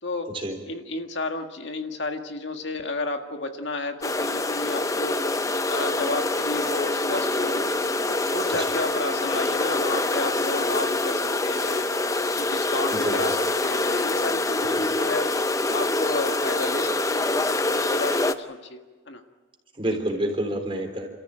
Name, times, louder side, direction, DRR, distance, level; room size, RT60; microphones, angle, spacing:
voice 1, 0.7-5.2 5.7-7.7 8.1-11.9 12.4-13.4 13.6-15.3 15.7-19.2, left 2 dB, 70° left, 5 dB, 1.8 m, -32 dB
sound 1, 4.0-18.3, left 2 dB, 15° left, 0.6 m, -25 dB
voice 2, 12.9-13.4 14.8-14.9 19.7-21.1, right 1 dB, 30° right, 3 dB, 3.7 m, -28 dB
29.5 x 14.0 x 8.9 m, 1.3 s
head